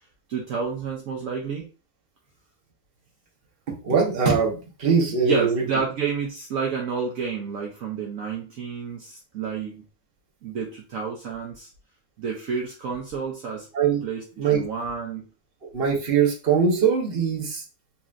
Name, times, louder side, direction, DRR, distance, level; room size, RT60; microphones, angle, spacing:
voice 1, 0.3-1.7 5.2-9.8 10.4-11.7 12.2-13.7 14.0-15.3, right 6 dB, 65° right, -1 dB, 1.1 m, -30 dB
voice 2, 3.8-5.6 13.7-14.0 14.4-14.6 15.7-17.6, right 6 dB, 40° right, -1 dB, 1.1 m, -21 dB
4.2 x 2.9 x 2.4 m, 0.34 s
omnidirectional pair, 1.7 m